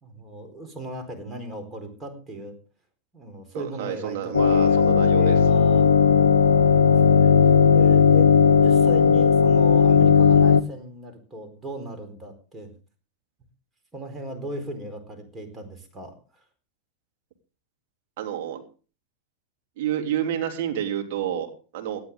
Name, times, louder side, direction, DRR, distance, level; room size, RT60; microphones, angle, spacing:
voice 1, 0.0-2.5 3.1-5.9 6.7-7.3 7.7-12.7 13.9-16.4, equal, 15° right, 4 dB, 4.4 m, -37 dB
voice 2, 3.5-5.3 18.2-18.6 19.8-22.0, right 10 dB, 50° right, 3 dB, 3.2 m, -29 dB
sound 1, 4.3-10.6, left 6 dB, 70° left, 0.6 m, -16 dB
18.0 x 12.0 x 3.8 m, 0.36 s
figure-of-eight pair, 90°, 0 cm